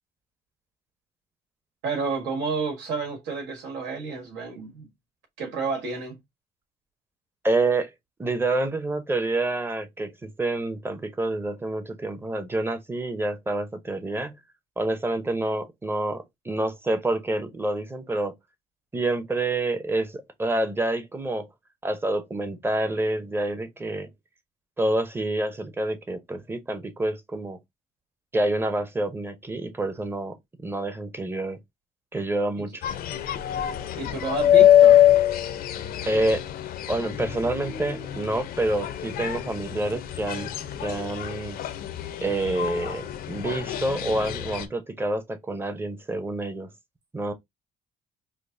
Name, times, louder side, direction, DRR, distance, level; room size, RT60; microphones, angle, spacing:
voice 1, 1.8-4.9 5.4-6.2 32.6-32.7 34.0-35.0, right 4 dB, 90° right, 1.5 m, -30 dB
voice 2, 7.4-7.9 8.2-14.4 14.8-18.3 18.9-21.5 21.8-24.1 24.8-27.6 28.3-31.6 32.1-32.8 36.1-36.4 36.9-40.5 40.8-41.6 42.2-46.7 47.1-47.3, right 2 dB, 15° right, 0.7 m, -28 dB
sound 1, 32.8-44.6, left 11 dB, 60° left, 0.5 m, -23 dB
5.1 x 2.0 x 2.5 m
cardioid pair, 110°, 17 cm